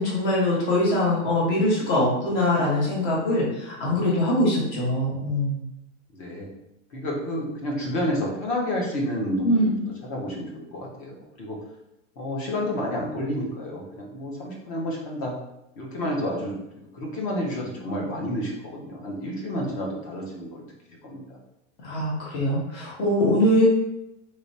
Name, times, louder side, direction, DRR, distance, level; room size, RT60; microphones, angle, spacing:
voice 1, 0.0-5.6 9.4-9.8 21.8-23.7, left 1 dB, 50° left, -5 dB, 1.4 m, -22 dB
voice 2, 6.1-6.5 6.9-9.7 10.1-11.6 12.2-15.3 15.8-16.5 16.9-20.7 21.0-21.4, equal, 25° left, -1 dB, 0.5 m, -30 dB
3.2 x 3.2 x 2.6 m, 0.88 s
supercardioid pair, 170°, 37 cm